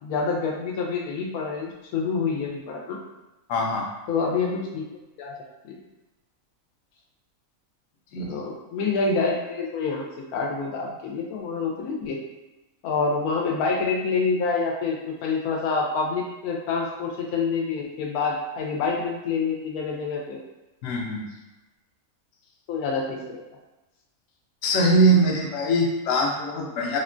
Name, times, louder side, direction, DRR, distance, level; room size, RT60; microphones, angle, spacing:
voice 1, 0.0-3.0 4.1-4.8 5.2-5.3 5.6-5.8 8.2-10.0 10.3-12.2 12.8-15.0 15.2-20.4 22.7-23.4, left 4 dB, 90° left, -1 dB, 1.1 m, -27 dB
voice 2, 3.5-3.9 8.1-8.4 20.8-21.3 24.6-27.0, right 1 dB, 70° left, -1 dB, 0.9 m, -22 dB
3.5 x 2.1 x 2.5 m, 1.0 s
omnidirectional pair, 1.5 m